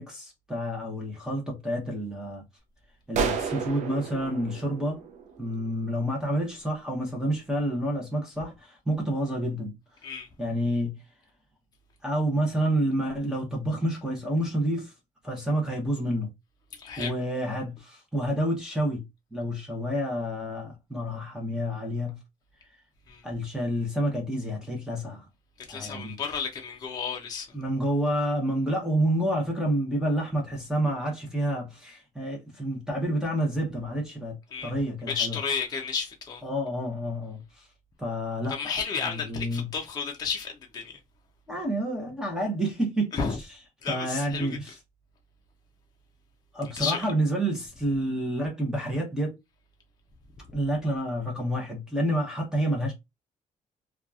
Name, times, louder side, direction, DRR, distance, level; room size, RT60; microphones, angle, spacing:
voice 1, 0.0-2.4 3.1-5.0 5.4-9.8 10.4-11.0 12.0-14.9 15.2-16.3 17.0-19.0 19.3-22.2 23.2-25.2 25.7-26.2 27.5-34.4 34.6-35.4 36.4-37.7 38.0-38.5 39.3-39.7 41.5-43.1 43.9-44.7 46.5-49.4 50.5-52.9, right 1 dB, 5° right, 0.8 m, -29 dB
sound 1, 3.1-5.7, right 6 dB, 65° right, 0.5 m, -32 dB
voice 2, 16.7-17.2 23.1-23.2 25.6-27.5 34.5-34.7 35.1-36.4 38.5-41.0 43.1-43.4 43.8-44.6 46.8-47.0, left 6 dB, 30° left, 0.5 m, -32 dB
2.8 x 2.3 x 2.3 m
cardioid pair, 140°, 13 cm